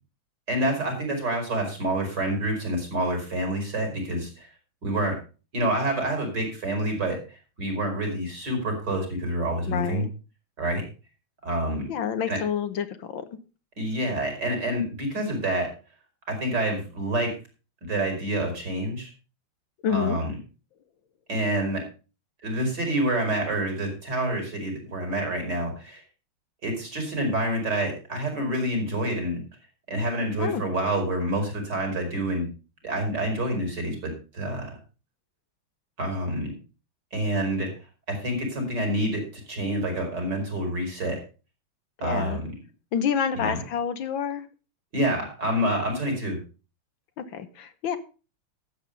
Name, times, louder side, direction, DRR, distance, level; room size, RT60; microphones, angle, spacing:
voice 1, 0.5-4.5 4.8-5.1 5.5-10.1 10.6-10.8 11.4-11.9 12.3-12.4 13.8-15.7 16.3-17.3 17.8-19.1 19.9-20.3 21.3-21.8 22.4-26.0 26.6-29.4 29.9-32.5 32.8-34.7 36.0-36.5 37.1-37.7 38.1-41.2 42.0-42.5 43.3-43.6 44.9-46.4, right 1 dB, 55° right, 3 dB, 5.2 m, -27 dB
voice 2, 9.7-10.1 11.9-13.3 19.8-20.2 30.4-30.6 42.0-42.4 42.9-44.5 47.2-48.0, left 8 dB, 75° left, 10 dB, 1.9 m, -28 dB
13.0 x 8.0 x 5.2 m, 0.33 s
omnidirectional pair, 2.2 m